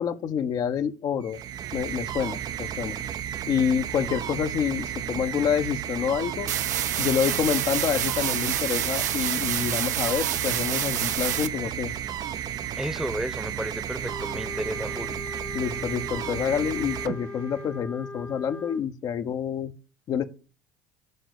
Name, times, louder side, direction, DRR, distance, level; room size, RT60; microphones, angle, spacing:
voice 1, 0.0-1.4 1.7-2.9 3.5-6.5 7.0-11.9 15.5-19.7 20.1-20.3, left 8 dB, 45° left, 0.9 m, -27 dB
sound 1, 1.2-17.7, right 10 dB, 45° right, 0.7 m, -33 dB
sound 2, 6.5-11.5, right 11 dB, 80° right, 0.6 m, -28 dB
voice 2, 12.8-15.1, right 1 dB, 5° right, 1.0 m, -32 dB
Wind instrument woodwind instrument, 14.0-18.8, left 3 dB, 15° left, 0.5 m, -39 dB
11.0 x 4.0 x 6.6 m
figure-of-eight pair, 65°, 9 cm